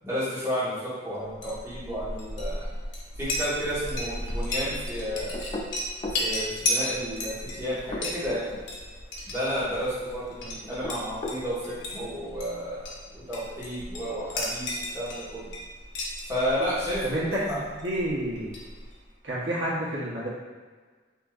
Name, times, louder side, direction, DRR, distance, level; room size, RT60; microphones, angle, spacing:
voice 1, 0.0-2.7 3.2-5.4 6.2-8.6 9.3-12.8 13.1-15.5 16.3-17.6, equal, 15° right, -11 dB, 1.4 m, -32 dB
Chink clink, 1.2-19.1, left 1 dB, 75° left, 0.8 m, -35 dB
sound 1, 5.3-6.3 7.7-8.5 10.6-11.5, left 2 dB, 30° left, 0.4 m, -35 dB
voice 2, 17.0-18.5 19.2-20.3, right 1 dB, 80° right, -6 dB, 1.0 m, -29 dB
4.8 x 2.9 x 2.4 m, 1.5 s
head